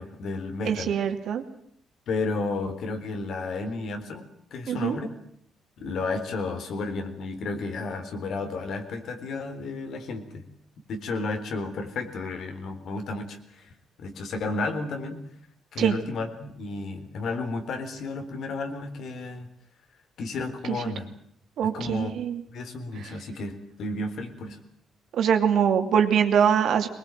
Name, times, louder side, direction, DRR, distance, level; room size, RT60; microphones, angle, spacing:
voice 1, 0.0-0.9 2.1-5.1 5.8-10.4 10.9-13.7 14.0-15.2 15.7-19.5 20.2-21.1 21.6-22.2 22.5-24.6, left 3 dB, 70° left, 7 dB, 3.8 m, -32 dB
voice 2, 0.6-1.4 4.7-5.0 15.8-16.0 20.7-20.8 21.6-22.4 25.1-26.9, right 8 dB, 70° right, 6 dB, 2.7 m, -23 dB
21.5 x 20.5 x 9.1 m, 0.66 s
cardioid pair, 90°, 0 cm